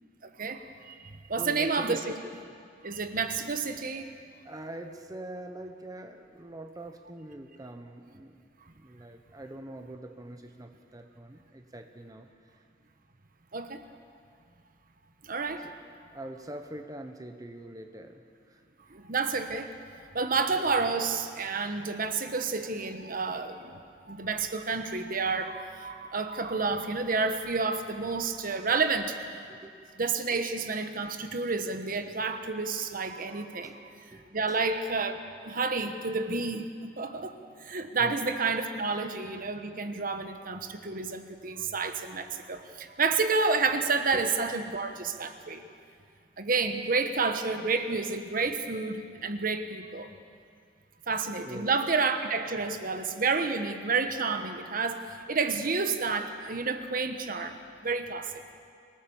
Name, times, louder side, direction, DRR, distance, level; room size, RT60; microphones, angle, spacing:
voice 1, 0.4-2.2 2.8-4.1 13.5-13.8 15.2-15.7 18.9-19.7 20.1-23.8 24.1-29.4 30.0-33.7 34.3-37.3 37.6-45.6 46.4-50.1 51.1-58.3, right 4 dB, 50° right, 7 dB, 1.2 m, -30 dB
voice 2, 1.4-2.0 4.4-8.4 8.8-12.6 15.6-18.6 29.5-29.8 32.1-32.2 33.3-33.8 34.1-34.6 38.0-38.1 44.1-44.2 51.4-51.7, right 1 dB, 20° right, 5 dB, 1.0 m, -44 dB
25.5 x 18.0 x 7.1 m, 2.3 s
head